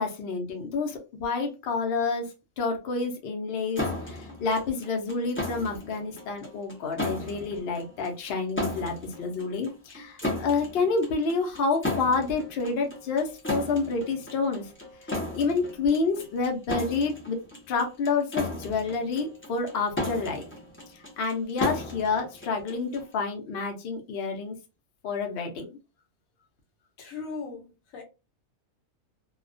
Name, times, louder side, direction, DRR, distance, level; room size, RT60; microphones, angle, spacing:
voice 1, 0.0-2.3 2.6-14.6 15.3-17.4 17.7-20.4 21.2-24.5 25.0-25.7, left 4 dB, 60° left, 0.7 m, -28 dB
sound 1, 3.8-23.1, left 2 dB, 20° left, 0.3 m, -35 dB
voice 2, 27.0-28.0, left 4 dB, 80° left, 1.1 m, -38 dB
2.3 x 2.1 x 2.4 m
omnidirectional pair, 1.4 m